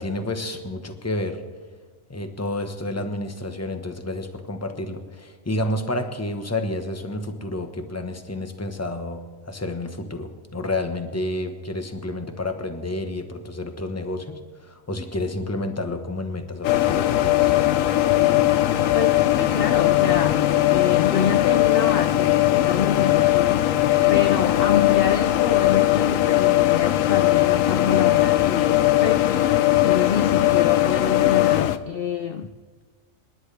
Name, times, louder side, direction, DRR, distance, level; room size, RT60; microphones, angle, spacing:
voice 1, 0.0-1.4 2.1-17.5, left 1 dB, 15° left, 1.0 m, -30 dB
sound 1, 16.6-31.8, left 14 dB, 75° left, 1.0 m, -19 dB
voice 2, 18.9-32.5, left 7 dB, 60° left, 0.6 m, -27 dB
28.5 x 10.5 x 3.3 m
omnidirectional pair, 1.4 m